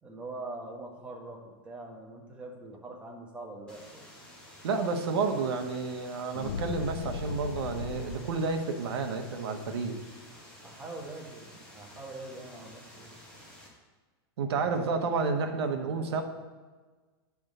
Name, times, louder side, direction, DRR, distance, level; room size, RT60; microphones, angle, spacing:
voice 1, 0.0-4.1 10.6-13.1 14.4-15.0 15.3-16.1, right 2 dB, 10° right, -2 dB, 1.1 m, -44 dB
sound 1, 3.7-13.7, left 1 dB, 5° left, 1.4 m, -52 dB
voice 2, 4.6-10.0 14.4-16.2, right 4 dB, 80° right, 5 dB, 1.0 m, -30 dB
sound 2, 6.3-8.5, left 5 dB, 85° left, 0.6 m, -37 dB
8.9 x 3.5 x 6.6 m, 1.3 s
supercardioid pair, 165°, 13 cm